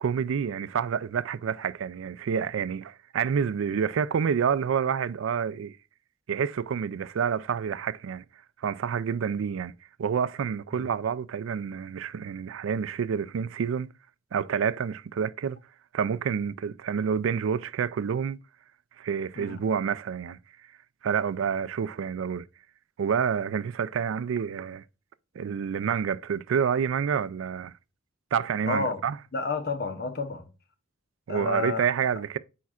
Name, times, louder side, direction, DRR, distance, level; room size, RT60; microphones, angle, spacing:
voice 1, 0.0-5.8 6.3-8.2 8.6-13.9 14.3-15.6 15.9-18.4 19.0-20.4 21.0-22.5 23.0-24.8 25.4-27.7 28.3-29.2 31.3-32.4, right 7 dB, 90° right, 0.4 m, -28 dB
voice 2, 28.6-29.0 29.3-30.5 31.3-31.9, left 3 dB, 55° left, 0.9 m, -30 dB
8.5 x 4.7 x 2.4 m
head